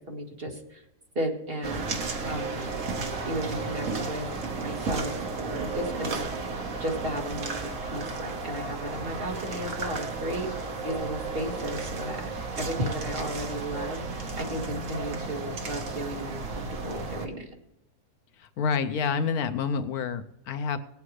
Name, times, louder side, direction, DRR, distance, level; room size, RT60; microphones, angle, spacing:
voice 1, 0.1-0.8 1.2-2.7 3.2-4.3 4.6-6.2 6.5-12.3 12.6-17.5, right 1 dB, 40° right, 0 dB, 2.0 m, -34 dB
sound 1, 1.6-17.3, right 3 dB, 55° right, 1.5 m, -33 dB
voice 2, 18.4-20.8, left 6 dB, 80° left, 10 dB, 1.2 m, -28 dB
18.5 x 8.7 x 3.2 m, 0.85 s
omnidirectional pair, 1.6 m